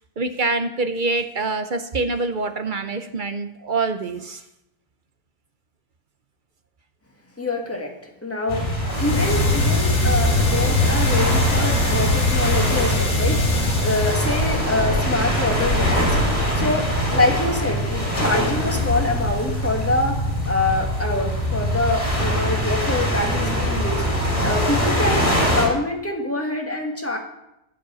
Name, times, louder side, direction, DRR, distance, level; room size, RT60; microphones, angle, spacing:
voice 1, 0.2-4.4, right 3 dB, 50° right, 8 dB, 0.6 m, -25 dB
voice 2, 7.4-7.9 8.2-8.6 9.0-13.4 13.8-16.2 16.5-24.0 24.4-27.2, left 2 dB, 10° left, 1 dB, 1.7 m, -25 dB
sound 1, 8.5-25.7, equal, 30° left, 4.0 m, -23 dB
sound 2, 8.9-14.8, left 2 dB, 50° left, 2.2 m, -22 dB
sound 3, 14.3-19.5, equal, 80° left, 3.4 m, -30 dB
15.5 x 5.3 x 6.9 m, 0.85 s
omnidirectional pair, 1.6 m